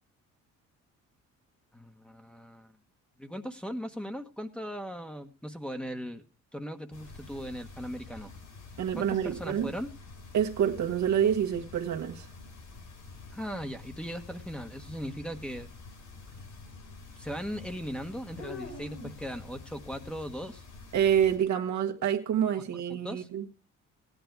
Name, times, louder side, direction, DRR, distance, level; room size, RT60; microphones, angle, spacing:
voice 1, 1.7-2.7 3.2-6.2 6.5-8.3 9.0-9.9 13.3-15.7 17.2-20.6 22.9-23.3, equal, 5° left, 1.2 m, -38 dB
sound 1, 6.9-21.4, left 3 dB, 75° left, 6.9 m, -47 dB
voice 2, 8.8-9.7 10.3-12.3 20.9-23.5, right 9 dB, 70° right, 1.6 m, -27 dB
16.0 x 10.5 x 4.6 m
cardioid pair, 90°, 30 cm